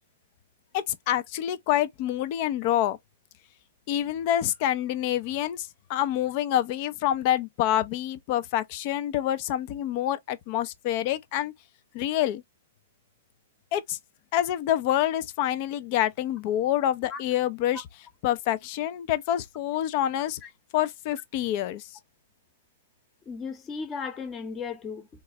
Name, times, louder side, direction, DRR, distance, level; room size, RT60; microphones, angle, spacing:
voice 1, 0.7-3.0 3.9-11.5 11.9-12.4 13.7-14.0 14.3-17.8 18.2-20.4 20.7-21.8, left 12 dB, 45° left, 0.5 m, -27 dB
voice 2, 23.3-25.1, left 5 dB, 25° left, 0.9 m, -35 dB
3.8 x 2.4 x 2.9 m
hypercardioid pair, 125°, 0 cm